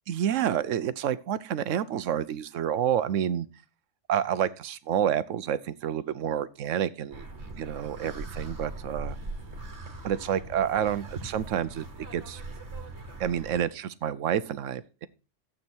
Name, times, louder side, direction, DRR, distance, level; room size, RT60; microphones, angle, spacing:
voice 1, 0.1-3.5 4.1-7.3 7.6-9.2 10.0-11.9 12.1-12.4 13.2-15.1, right 9 dB, 85° right, 1.1 m, -29 dB
city river, 7.1-13.6, right 2 dB, 60° right, 2.2 m, -40 dB
12.5 x 8.1 x 4.4 m
omnidirectional pair, 1.3 m